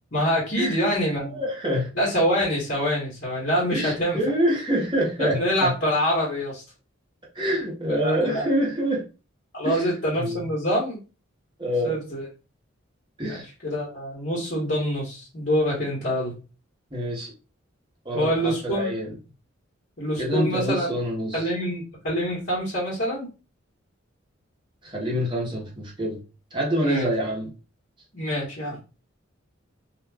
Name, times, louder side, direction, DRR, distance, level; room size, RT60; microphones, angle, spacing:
voice 1, 0.1-1.4 1.9-4.2 5.2-6.6 7.9-8.5 9.5-11.0 11.8-12.3 13.2-16.3 18.1-18.9 20.0-20.9 21.3-23.3 26.8-27.1 28.1-28.8, equal, 50° left, -6 dB, 1.1 m, -25 dB
voice 2, 1.3-1.9 3.7-5.7 7.3-9.0 9.6-9.9 10.1-10.5 11.6-11.9 13.2-13.5 16.9-17.3 18.0-19.1 20.2-21.5 24.8-26.2 26.5-27.5, equal, 25° right, -3 dB, 1.0 m, -26 dB
2.5 x 2.3 x 3.3 m, 0.32 s
head